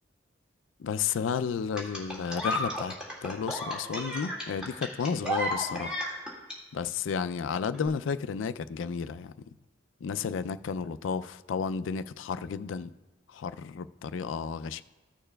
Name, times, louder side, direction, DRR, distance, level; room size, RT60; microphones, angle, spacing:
voice 1, 0.8-2.9 3.2-6.0 6.7-9.3 10.0-12.9 13.3-14.8, left 6 dB, 85° left, 0.4 m, -32 dB
sound 1, 1.8-6.6 7.7-7.9, equal, 5° right, 1.9 m, -33 dB
15.0 x 6.7 x 2.2 m
head